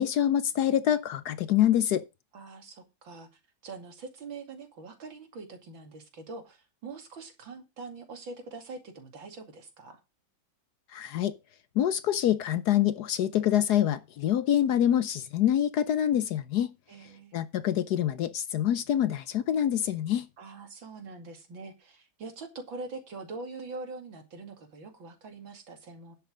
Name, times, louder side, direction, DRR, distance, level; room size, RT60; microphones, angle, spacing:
voice 1, 0.0-2.0 10.9-11.3 11.8-16.7 17.3-20.3, left 10 dB, 65° left, 1.1 m, -26 dB
voice 2, 2.3-10.0 16.9-17.4 20.4-26.2, right 3 dB, 80° right, 3.2 m, -43 dB
10.5 x 7.4 x 5.0 m
omnidirectional pair, 2.1 m